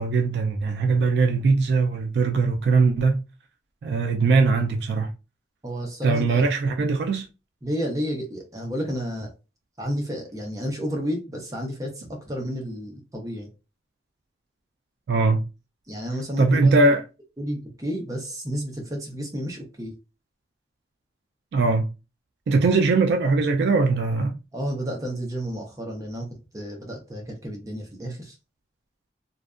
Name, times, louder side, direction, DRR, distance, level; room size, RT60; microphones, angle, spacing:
voice 1, 0.0-3.2 3.8-5.1 6.0-7.3 15.1-15.4 16.4-17.0 21.5-21.9 22.5-24.4, right 3 dB, 65° right, 0.3 m, -21 dB
voice 2, 5.6-6.4 7.6-9.3 9.8-13.5 15.9-16.9 17.4-19.9 24.5-28.3, equal, 20° right, 0.5 m, -31 dB
2.5 x 2.2 x 2.3 m
head